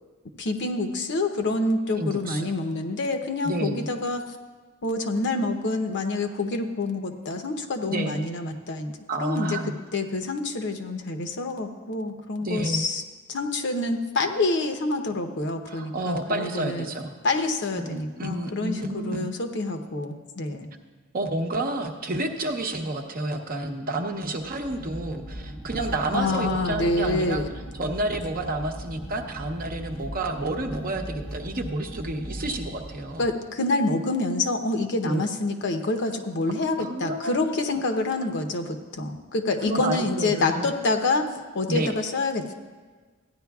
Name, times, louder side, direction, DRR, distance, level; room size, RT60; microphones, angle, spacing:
voice 1, 0.4-4.2 4.8-8.9 9.2-9.6 9.9-13.0 13.3-16.9 17.2-20.7 26.1-27.5 33.2-41.3 41.5-42.5, left 2 dB, 55° left, 5 dB, 0.8 m, -27 dB
voice 2, 2.0-2.5 3.4-3.9 7.9-8.2 9.1-9.8 12.4-12.9 15.7-17.1 17.8-19.3 21.1-27.4 27.7-33.3 35.0-35.2 36.8-37.3 39.7-40.7 41.7-41.9, right 2 dB, 40° right, 4 dB, 0.8 m, -30 dB
sound 1, 24.4-33.5, equal, 5° left, 0.7 m, -38 dB
15.0 x 10.0 x 2.3 m, 1.4 s
head